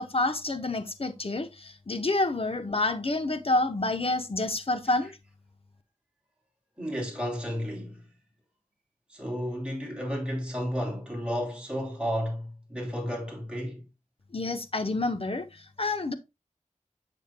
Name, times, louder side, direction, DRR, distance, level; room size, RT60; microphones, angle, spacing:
voice 1, 0.0-5.1 14.3-16.1, left 2 dB, 45° left, 0.9 m, -28 dB
voice 2, 6.8-8.1 9.1-13.8, equal, 5° right, 3.0 m, -32 dB
7.2 x 7.1 x 2.2 m
wide cardioid pair, 65°, 13 cm